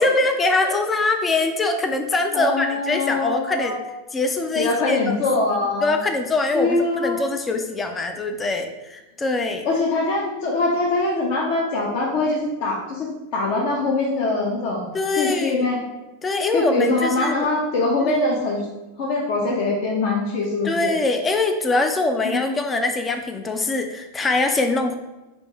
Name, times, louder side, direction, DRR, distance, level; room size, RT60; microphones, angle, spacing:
voice 1, 0.0-3.8 4.1-5.2 5.8-9.7 14.9-15.7 16.2-17.3 18.0-18.4 20.6-25.0, left 2 dB, 15° left, 6 dB, 0.4 m, -23 dB
voice 2, 2.3-3.8 4.6-5.9 6.5-7.2 9.6-15.8 16.5-18.7 19.0-20.9 22.2-22.5, left 2 dB, 45° left, -2 dB, 0.7 m, -23 dB
4.3 x 2.6 x 4.5 m, 1.1 s
figure-of-eight pair, 90°, 0 cm